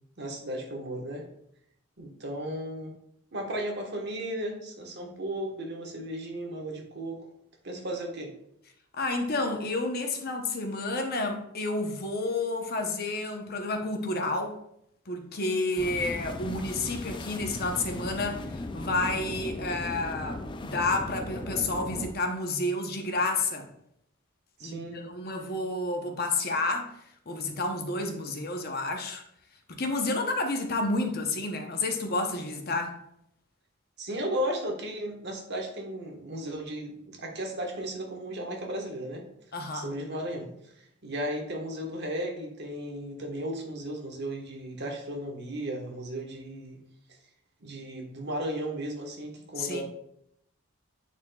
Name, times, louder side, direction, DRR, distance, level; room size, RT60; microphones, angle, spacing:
voice 1, 0.2-1.3 2.0-2.9 3.3-7.2 7.6-8.3 24.6-25.1 34.0-39.2 39.7-46.8 47.6-49.8, right 1 dB, 55° right, 1.3 m, -35 dB
voice 2, 9.0-14.6 15.1-23.7 24.6-27.0 27.3-29.2 29.7-33.0 39.5-39.9 49.6-49.8, left 2 dB, 45° left, 0.9 m, -30 dB
sound 1, 15.8-22.1, left 2 dB, 25° left, 0.4 m, -37 dB
9.7 x 4.3 x 2.3 m
head